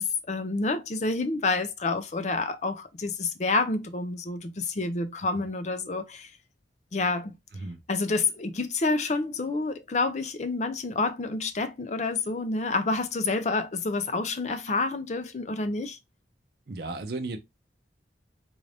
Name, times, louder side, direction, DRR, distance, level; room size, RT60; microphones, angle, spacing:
voice 1, 0.0-6.3 6.9-7.4 7.9-16.0, left 3 dB, 40° left, 0.5 m, -28 dB
voice 2, 16.7-17.4, right 2 dB, 60° right, 0.5 m, -34 dB
3.7 x 2.6 x 3.3 m
head